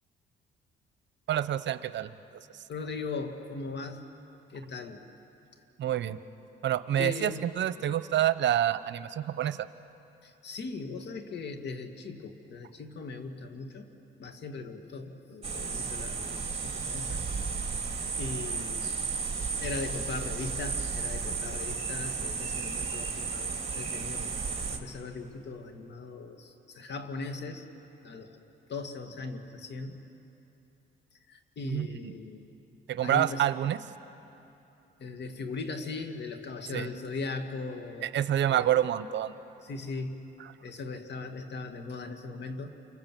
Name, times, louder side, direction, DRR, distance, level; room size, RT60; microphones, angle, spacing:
voice 1, 1.3-2.4 5.8-6.2 6.6-9.7 31.6-32.1 32.9-33.8 36.7-36.9 38.0-39.3, right 11 dB, 65° right, 13 dB, 0.9 m, -28 dB
voice 2, 2.7-4.0 4.5-5.0 7.0-7.5 10.2-13.9 14.2-17.2 18.2-19.0 19.6-24.4 24.7-27.6 28.0-28.4 28.7-30.0 31.3-32.4 33.0-33.5 35.0-38.1 38.5-38.8 39.6-40.3 40.6-42.7, left 3 dB, 60° left, 6 dB, 2.3 m, -39 dB
sound 1, 15.4-24.8, right 5 dB, 30° right, 3.0 m, -33 dB
28.5 x 26.5 x 7.7 m, 2.9 s
cardioid pair, 90°, 20 cm